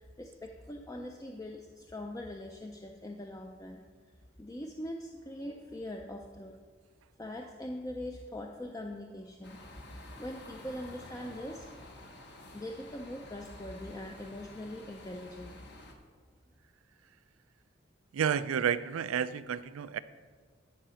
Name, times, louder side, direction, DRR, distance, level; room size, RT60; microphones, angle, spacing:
voice 1, 0.0-3.8 4.4-6.6 7.2-9.6 10.2-11.7 12.5-15.6, left 1 dB, 15° left, 2 dB, 0.4 m, -42 dB
sound 1, 9.4-15.9, left 2 dB, 55° left, 1.0 m, -50 dB
voice 2, 18.1-20.0, right 8 dB, 90° right, 15 dB, 0.4 m, -30 dB
10.5 x 4.9 x 5.6 m, 1.6 s
head